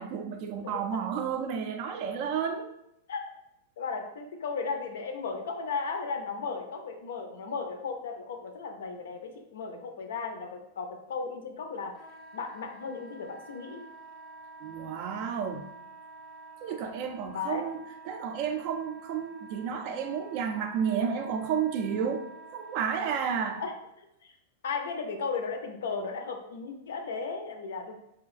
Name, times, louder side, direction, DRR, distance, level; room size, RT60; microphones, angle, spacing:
voice 1, 0.0-2.7 14.6-15.7 16.6-17.8 18.1-22.3 22.5-23.6, right 7 dB, 50° right, 6 dB, 0.3 m, -31 dB
voice 2, 0.6-1.0 3.1-3.2 3.8-12.0 12.3-13.8 17.3-17.6 23.6-23.7 24.0-24.3 24.6-27.9, left 5 dB, 80° left, 5 dB, 0.4 m, -35 dB
Wind instrument woodwind instrument, 11.9-23.7, right 3 dB, 15° left, 0.5 m, -49 dB
2.8 x 2.4 x 2.4 m, 0.81 s
hypercardioid pair, 130°, 0 cm